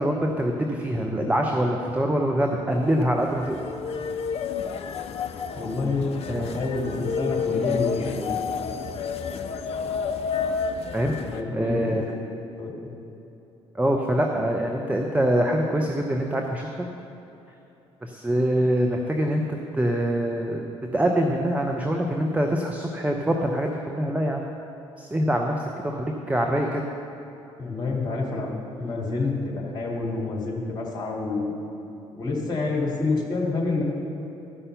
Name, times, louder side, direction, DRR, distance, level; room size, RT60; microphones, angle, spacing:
voice 1, 0.0-3.6 6.3-6.6 10.9-11.1 11.5-12.1 13.7-16.9 18.0-20.6 20.9-24.4 25.0-26.8, right 1 dB, 10° right, 1 dB, 0.8 m, -24 dB
sound 1, 2.9-11.4, left 6 dB, 45° left, 0.6 m, -30 dB
voice 2, 5.5-8.3 11.2-12.0 12.6-13.0 27.6-28.5 28.8-31.5 32.1-33.8, left 3 dB, 25° left, -3 dB, 2.5 m, -28 dB
12.5 x 5.6 x 6.8 m, 3.0 s
figure-of-eight pair, 50°, 15 cm